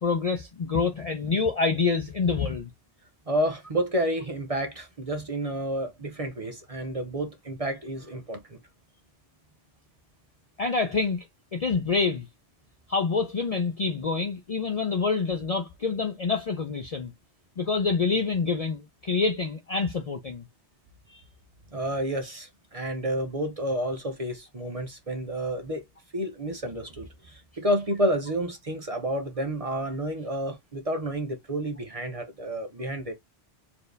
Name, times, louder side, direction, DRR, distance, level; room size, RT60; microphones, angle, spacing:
voice 1, 0.0-2.7 10.6-11.2 11.5-12.3 12.9-17.1 17.6-20.4, left 4 dB, 50° left, 0.5 m, -26 dB
voice 2, 3.3-8.6 21.1-21.2 21.7-25.8 26.1-33.1, right 1 dB, 35° right, 0.7 m, -30 dB
4.4 x 2.7 x 3.3 m
omnidirectional pair, 1.2 m